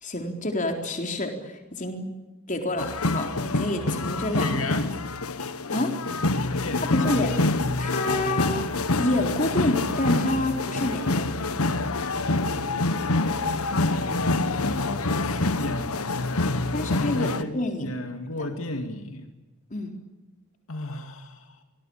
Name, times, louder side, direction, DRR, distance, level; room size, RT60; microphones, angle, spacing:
voice 1, 0.0-2.1 2.5-4.6 5.7-5.9 6.9-7.4 7.8-8.6 9.0-11.3 16.7-17.9 19.7-19.9, left 1 dB, 35° left, 4 dB, 4.1 m, -28 dB
sound 1, 2.8-17.4, left 2 dB, 85° left, 1.4 m, -26 dB
voice 2, 4.4-4.9 6.5-7.1 13.6-16.6 17.1-19.3 20.7-21.6, left 2 dB, 70° left, 5 dB, 2.6 m, -34 dB
26.0 x 21.0 x 8.9 m, 1.1 s
head